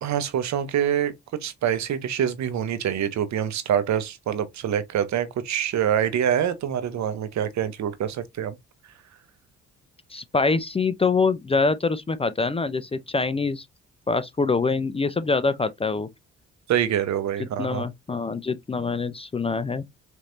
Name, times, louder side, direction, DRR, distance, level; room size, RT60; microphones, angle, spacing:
voice 1, 0.0-8.5 16.7-17.8, right 9 dB, 65° right, 0.9 m, -25 dB
voice 2, 10.1-13.7 14.1-16.1 17.4-19.8, left 4 dB, 20° left, 0.4 m, -25 dB
4.4 x 3.2 x 2.6 m
cardioid pair, 90°, 30 cm